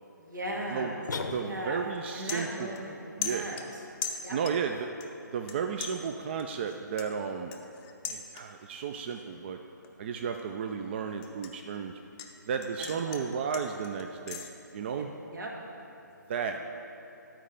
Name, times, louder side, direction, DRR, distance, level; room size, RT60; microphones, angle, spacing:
voice 1, 0.1-1.0 1.4-3.6 4.2-4.4 12.9-13.5 15.0-15.5 16.5-16.6, right 1 dB, 75° right, -2 dB, 1.9 m, -38 dB
sound 1, 1.1-2.0, left 4 dB, 70° left, 0.6 m, -36 dB
voice 2, 1.3-2.7 3.2-3.5 4.3-4.9 5.3-7.5 8.1-9.6 10.0-11.9 12.5-14.4 14.7-15.1 16.3-16.6, right 6 dB, 35° right, 5 dB, 0.3 m, -33 dB
sound 2, 2.3-3.0 3.2-4.7 5.0-5.5 5.8-8.7 9.1-9.4 9.8-12.3 12.6-14.5, left 7 dB, 20° left, 0.5 m, -40 dB
11.5 x 4.5 x 5.0 m, 2.8 s
figure-of-eight pair, 145°, 10 cm